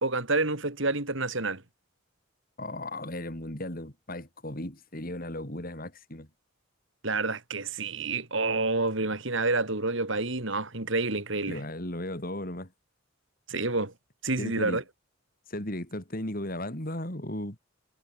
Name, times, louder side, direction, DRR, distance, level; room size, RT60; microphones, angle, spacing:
voice 1, 0.0-1.6 7.0-11.6 13.5-13.9 14.2-14.8, right 3 dB, 60° right, 2.9 m, -28 dB
voice 2, 2.6-6.3 11.5-12.7 14.4-14.8 15.5-17.6, left 1 dB, 40° left, 3.4 m, -36 dB
head